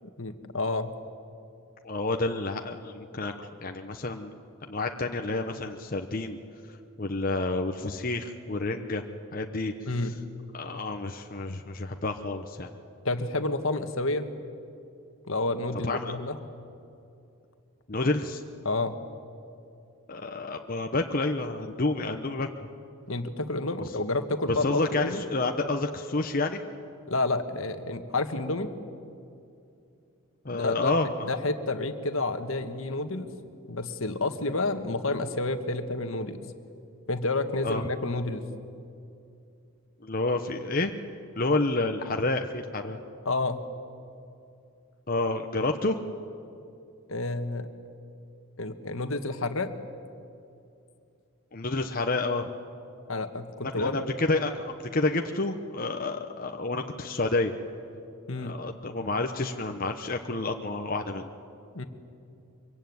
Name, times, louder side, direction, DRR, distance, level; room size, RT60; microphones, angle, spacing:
voice 1, 0.0-0.9 9.9-10.1 13.0-14.3 15.3-16.4 18.6-19.0 23.1-25.2 27.1-28.7 30.5-33.3 33.7-36.4 37.1-38.5 43.2-43.6 47.1-47.7 48.6-49.7 53.1-54.0 58.3-58.5 61.7-61.9, left 2 dB, 70° left, 8 dB, 1.6 m, -30 dB
voice 2, 1.8-4.3 4.6-6.4 7.0-9.0 9.3-9.7 10.0-10.1 10.5-12.7 15.8-16.1 17.9-18.4 20.1-22.5 24.5-26.6 30.4-31.3 37.6-37.8 40.0-40.9 41.4-43.0 45.1-46.0 51.5-52.5 53.8-57.5 58.4-61.3, left 2 dB, 40° left, 4 dB, 1.0 m, -29 dB
24.5 x 23.5 x 9.5 m, 2.6 s
head